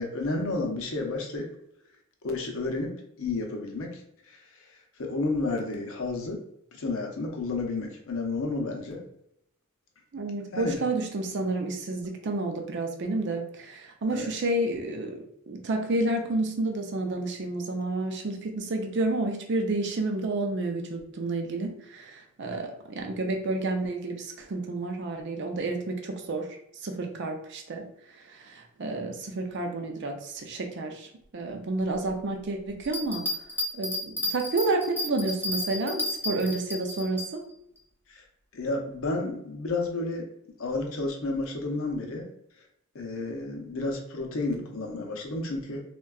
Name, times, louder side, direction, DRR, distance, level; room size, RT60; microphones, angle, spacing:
voice 1, 0.0-1.5 2.2-4.4 5.0-6.4 6.7-9.0 10.5-10.8 14.1-14.3 38.1-38.2 38.5-40.3 40.6-42.3 42.9-45.8, left 2 dB, 65° left, 2 dB, 0.6 m, -31 dB
voice 2, 10.1-26.5 26.8-27.9 28.4-31.1 31.3-33.3 33.7-37.4, right 2 dB, 55° right, 3 dB, 0.5 m, -30 dB
Bell, 32.8-37.3 37.8-37.9, left 2 dB, 10° left, 0.5 m, -32 dB
3.6 x 2.2 x 2.3 m, 0.74 s
head